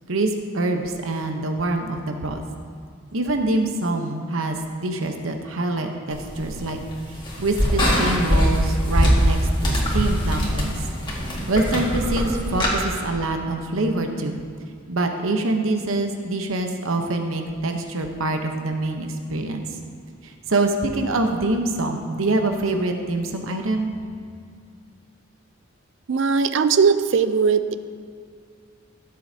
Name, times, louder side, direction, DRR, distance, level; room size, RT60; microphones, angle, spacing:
voice 1, 0.1-2.4 3.1-4.6 4.8-6.8 7.1-10.8 11.5-14.4 14.9-19.7 20.2-23.9, right 2 dB, 80° right, 4 dB, 0.9 m, -25 dB
sound 1, 6.1-12.7, equal, 25° left, 1.8 m, -22 dB
voice 2, 26.1-27.7, right 5 dB, 60° right, 12 dB, 0.4 m, -19 dB
16.5 x 7.8 x 2.8 m, 2.3 s
head